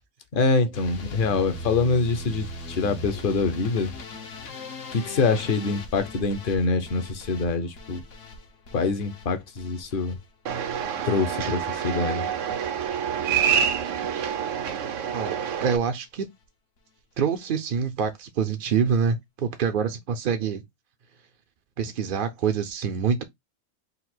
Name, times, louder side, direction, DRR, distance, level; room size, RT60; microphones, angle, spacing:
voice 1, 0.3-3.9 4.9-8.0 8.7-10.2 11.1-12.3, left 4 dB, 50° left, 0.8 m, -25 dB
sound 1, 0.7-12.9 13.2-13.7 14.1-14.6 15.0-15.2 15.5-15.6 15.9-16.0, left 1 dB, 70° left, 1.2 m, -40 dB
sound 2, 10.5-15.8, right 8 dB, 80° right, 1.0 m, -27 dB
voice 2, 15.1-16.3 17.2-20.6 21.8-23.2, right 6 dB, 60° right, 0.6 m, -26 dB
3.9 x 2.4 x 4.3 m
omnidirectional pair, 1.3 m